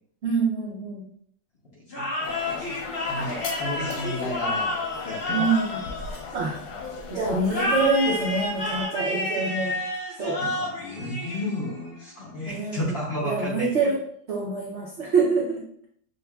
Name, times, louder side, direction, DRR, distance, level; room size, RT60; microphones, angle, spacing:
voice 1, 0.2-1.0 5.3-5.8 6.3-6.6 7.1-9.8 10.2-10.4 12.5-14.0 14.3-15.9, right 4 dB, 70° right, -2 dB, 0.6 m, -26 dB
voice 2, 1.7-4.8 5.0-5.5 10.4-13.9, left 1 dB, 55° left, -4 dB, 0.7 m, -33 dB
sound 1, 1.9-6.7 7.5-11.9, left 2 dB, 40° left, 1.1 m, -30 dB
sound 2, 2.2-8.8, left 4 dB, 85° left, 1.4 m, -37 dB
6.3 x 2.4 x 2.2 m, 0.63 s
omnidirectional pair, 1.9 m